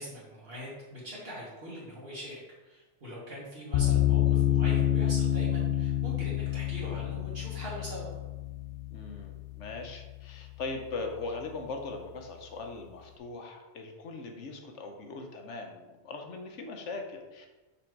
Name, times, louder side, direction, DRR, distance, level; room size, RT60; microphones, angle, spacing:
voice 1, 0.0-8.1, equal, 55° right, -7 dB, 1.8 m, -42 dB
sound 1, 3.7-10.8, left 12 dB, 60° left, 0.8 m, -28 dB
voice 2, 8.9-17.5, left 3 dB, 90° left, 3 dB, 1.2 m, -40 dB
6.2 x 4.1 x 4.6 m, 1.1 s
omnidirectional pair, 1.2 m